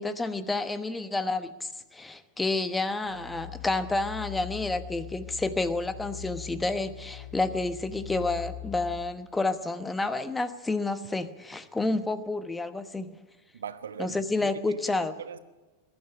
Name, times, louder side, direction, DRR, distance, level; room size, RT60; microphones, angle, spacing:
voice 1, 0.0-13.1 14.0-15.2, left 2 dB, 10° left, 1.1 m, -30 dB
sound 1, 3.0-9.0, left 10 dB, 75° left, 1.9 m, -42 dB
voice 2, 13.5-15.4, right 7 dB, 65° right, 1.1 m, -41 dB
21.5 x 12.5 x 9.9 m
figure-of-eight pair, 90°, 0 cm